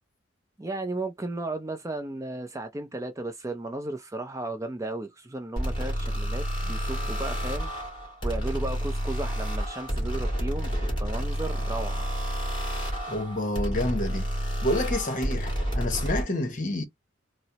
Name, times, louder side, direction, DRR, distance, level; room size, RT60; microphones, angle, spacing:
voice 1, 0.6-7.7 8.2-12.1, right 2 dB, 15° right, 0.4 m, -35 dB
sound 1, 5.6-16.2, equal, 25° left, 2.6 m, -29 dB
voice 2, 13.1-16.8, left 1 dB, 40° left, 0.9 m, -29 dB
4.1 x 2.0 x 2.9 m
head